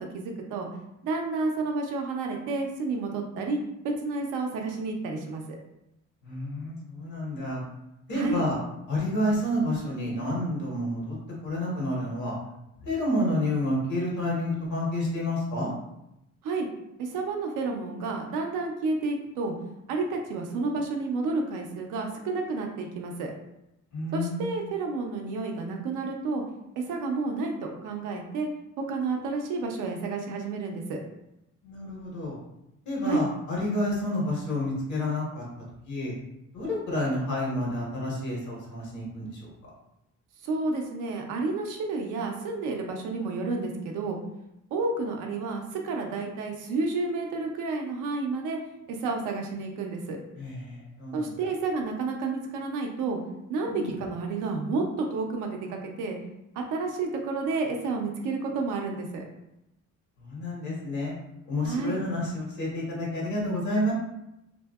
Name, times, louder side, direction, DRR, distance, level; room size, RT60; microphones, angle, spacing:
voice 1, 0.1-0.7 1.0-5.4 8.1-8.4 16.4-16.7 17.0-19.5 19.9-23.3 24.1-26.4 26.8-28.5 28.9-31.0 33.0-33.2 40.4-44.2 44.7-48.6 48.9-50.2 51.1-53.2 53.5-56.2 56.6-59.2 61.6-62.0, right 3 dB, 90° right, 2 dB, 0.6 m, -30 dB
voice 2, 6.2-7.6 8.1-8.6 8.9-11.1 11.4-12.4 12.8-15.7 23.9-24.5 31.6-32.4 32.8-35.4 35.8-36.1 36.5-39.5 50.3-51.3 53.7-54.0 60.2-61.1 61.5-63.9, left 1 dB, 70° left, -4 dB, 1.3 m, -29 dB
2.7 x 2.6 x 2.3 m, 0.86 s
cardioid pair, 90°, 30 cm